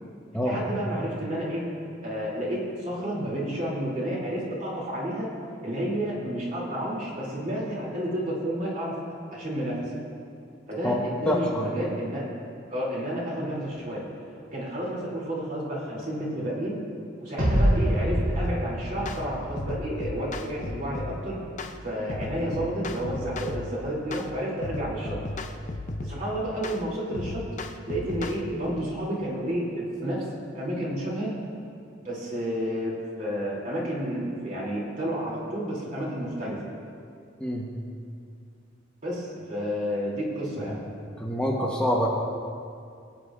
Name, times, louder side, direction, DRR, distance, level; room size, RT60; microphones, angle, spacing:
voice 1, 0.4-1.7 2.0-5.3 5.6-9.0 9.3-9.9 10.7-12.3 12.7-14.1 14.5-16.8 17.2-21.4 21.8-25.2 26.0-27.4 27.9-30.3 30.5-31.3 32.0-36.7 39.0-40.8, equal, 40° right, -5 dB, 2.9 m, -31 dB
voice 2, 11.3-11.7 37.4-37.7 41.2-42.1, equal, 5° left, -4 dB, 1.0 m, -26 dB
sound 1, 17.4-20.7, equal, 85° right, 2.4 m, -26 dB
sound 2, 18.4-18.6 19.1-19.2 19.6-21.2 21.6-21.8 22.1-23.7 24.1-24.3 24.6-26.2 26.6-26.8 27.1-28.4, left 2 dB, 40° left, 0.5 m, -35 dB
23.5 x 9.1 x 2.5 m, 2.4 s
head